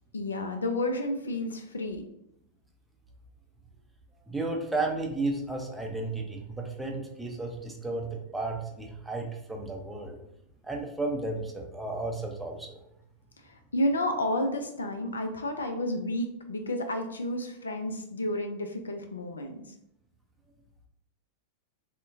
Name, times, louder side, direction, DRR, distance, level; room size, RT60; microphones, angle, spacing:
voice 1, 0.1-2.0 13.4-19.7, left 1 dB, 75° left, 5 dB, 0.3 m, -31 dB
voice 2, 4.3-10.2 10.6-12.8, right 2 dB, 5° right, 1 dB, 0.5 m, -33 dB
3.5 x 2.1 x 2.6 m, 0.78 s
figure-of-eight pair, 90°, 0 cm